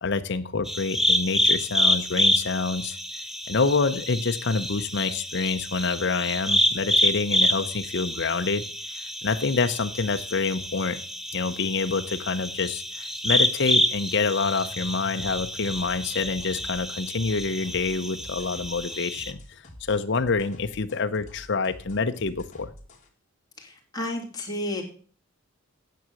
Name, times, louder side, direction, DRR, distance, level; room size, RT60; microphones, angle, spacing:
voice 1, 0.0-3.0 3.5-8.6 9.2-11.0 11.3-19.4 19.8-22.7, left 4 dB, 55° left, 8 dB, 0.7 m, -27 dB
sound 1, 0.7-19.3, equal, ahead, 0.6 m, -28 dB
sound 2, 15.1-23.1, left 1 dB, 35° left, 2.5 m, -47 dB
voice 2, 23.6-24.8, left 1 dB, 20° left, -1 dB, 2.8 m, -32 dB
9.4 x 7.0 x 7.6 m, 0.43 s
head